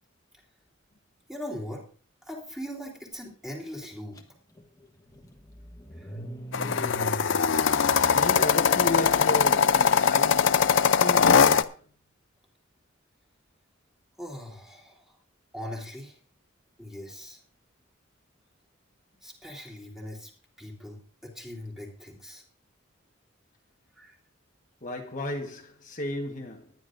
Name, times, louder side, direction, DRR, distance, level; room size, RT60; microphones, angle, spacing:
voice 1, 1.3-1.8 2.3-4.2 6.0-6.1 14.2-15.1 15.5-16.1 16.8-17.4 19.2-20.3 20.6-22.4 24.0-24.1, equal, ahead, 3.4 m, -40 dB
Car / Engine starting, 4.2-4.3 4.6-9.8, right 1 dB, 20° left, 1.3 m, -42 dB
sound 1, 6.5-11.6, left 6 dB, 70° left, 0.6 m, -21 dB
voice 2, 6.6-7.3 8.1-11.9 24.8-26.7, left 1 dB, 40° left, 1.4 m, -35 dB
19.0 x 11.0 x 2.6 m
head